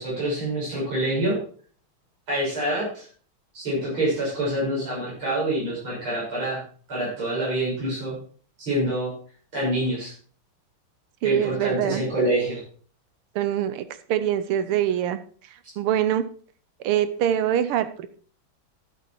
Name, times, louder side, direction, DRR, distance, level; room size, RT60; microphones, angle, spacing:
voice 1, 0.0-1.4 2.3-3.1 3.5-6.6 6.9-8.2 8.6-9.1 9.5-10.1 11.2-12.6, right 1 dB, 70° right, -7 dB, 7.8 m, -26 dB
voice 2, 11.2-12.0 13.3-15.2 15.8-16.2 16.8-18.1, right 10 dB, 85° right, 13 dB, 1.7 m, -24 dB
11.5 x 8.3 x 4.6 m, 0.43 s
omnidirectional pair, 2.4 m